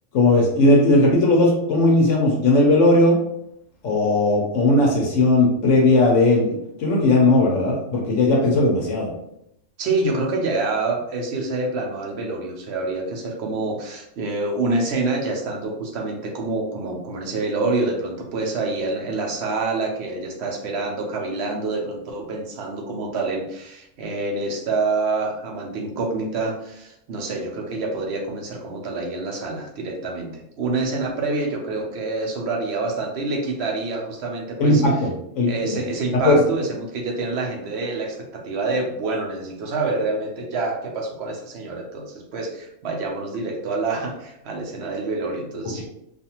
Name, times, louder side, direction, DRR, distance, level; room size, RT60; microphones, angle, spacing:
voice 1, 0.1-3.2 3.8-6.5 6.8-9.1 34.6-35.8 36.1-36.4, left 2 dB, 70° left, -1 dB, 0.9 m, -17 dB
voice 2, 9.8-34.8 35.5-45.8, right 3 dB, 60° right, 0 dB, 0.8 m, -27 dB
2.5 x 2.4 x 2.8 m, 0.78 s
omnidirectional pair, 1.5 m